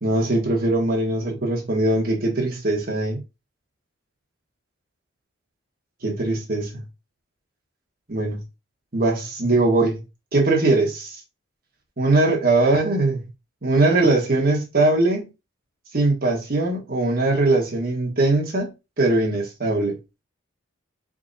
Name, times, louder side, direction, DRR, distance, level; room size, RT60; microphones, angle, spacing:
voice 1, 0.0-3.2 6.0-6.8 8.1-8.4 8.9-10.0 10.3-11.2 12.0-13.2 13.6-15.3 15.9-18.7 19.0-20.0, right 2 dB, 45° right, 1.4 m, -21 dB
4.5 x 3.8 x 2.7 m
head